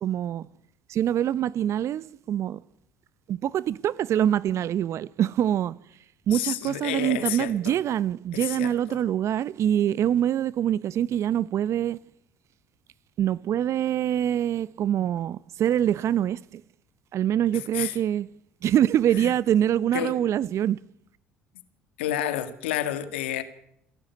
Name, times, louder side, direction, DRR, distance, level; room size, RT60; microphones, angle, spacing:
voice 1, 0.0-0.5 0.9-2.6 3.3-5.7 6.3-12.0 13.2-16.6 17.1-18.3 18.6-20.8, right 10 dB, 55° right, 0.7 m, -25 dB
voice 2, 6.3-7.8 8.3-9.0 17.5-18.0 19.1-19.3 19.9-20.2 22.0-23.4, left 12 dB, 85° left, 1.9 m, -30 dB
28.5 x 11.5 x 9.5 m
hypercardioid pair, 65°, 6 cm